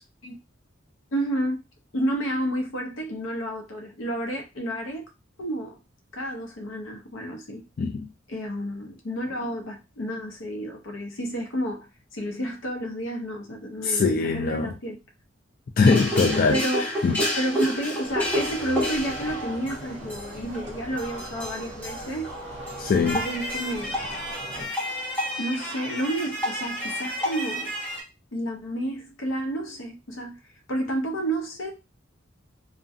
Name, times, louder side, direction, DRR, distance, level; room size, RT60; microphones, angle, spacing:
voice 1, 1.1-1.6 1.9-5.1 5.4-5.8 6.1-7.6 8.3-15.0 16.5-16.8 17.4-22.3 23.0-24.0 25.4-27.7 28.3-30.4 30.7-31.7, right 1 dB, 85° left, 0.7 m, -30 dB
voice 2, 7.8-8.1 13.8-14.7 15.8-17.2 22.8-23.2, left 4 dB, 45° left, 0.3 m, -22 dB
sound 1, 15.8-28.0, equal, 10° left, 0.9 m, -30 dB
sound 2, 18.0-24.7, right 1 dB, 35° right, 0.6 m, -41 dB
2.6 x 2.1 x 2.4 m
head